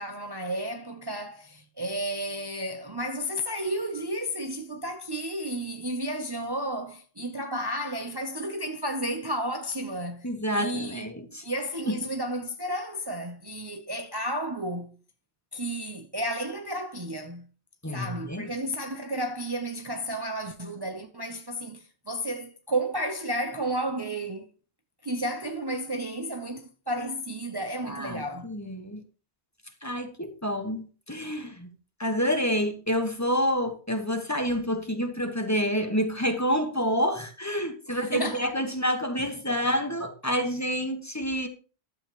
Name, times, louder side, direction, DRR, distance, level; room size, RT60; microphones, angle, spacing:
voice 1, 0.0-11.1 11.4-15.0 15.5-17.5 17.9-24.5 25.0-28.5 37.9-38.5, right 1 dB, 25° right, 0.8 m, -32 dB
voice 2, 10.2-11.4 11.9-12.0 17.8-18.5 27.8-29.0 29.8-31.7 32.0-41.5, equal, 15° left, 1.4 m, -28 dB
12.0 x 7.9 x 3.1 m
omnidirectional pair, 1.1 m